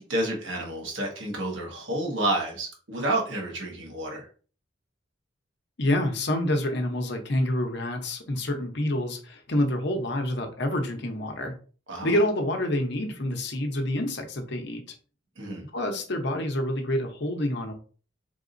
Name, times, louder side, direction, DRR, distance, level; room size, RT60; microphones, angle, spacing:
voice 1, 0.0-4.3 11.9-12.1 15.4-15.7, right 1 dB, 75° right, 0 dB, 1.3 m, -30 dB
voice 2, 5.8-11.5 12.0-14.8 15.7-17.7, left 1 dB, 60° left, 4 dB, 0.8 m, -27 dB
4.0 x 3.5 x 2.6 m, 0.39 s
head